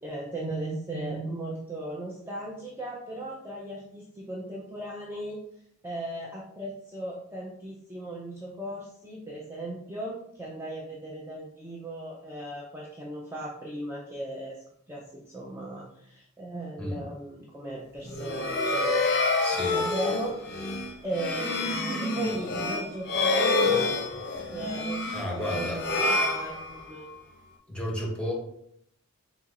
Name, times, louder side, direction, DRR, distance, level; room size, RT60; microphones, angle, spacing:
voice 1, 0.0-5.4 5.8-19.1 19.7-20.4 21.0-23.7 24.5-27.1, right 1 dB, 10° right, -4 dB, 0.5 m, -37 dB
sound 1, 18.0-27.1, left 3 dB, 50° left, 0.6 m, -28 dB
voice 2, 19.4-19.8 25.1-25.8 27.7-28.3, left 1 dB, 5° left, -2 dB, 1.1 m, -32 dB
4.4 x 3.9 x 2.4 m, 0.71 s
head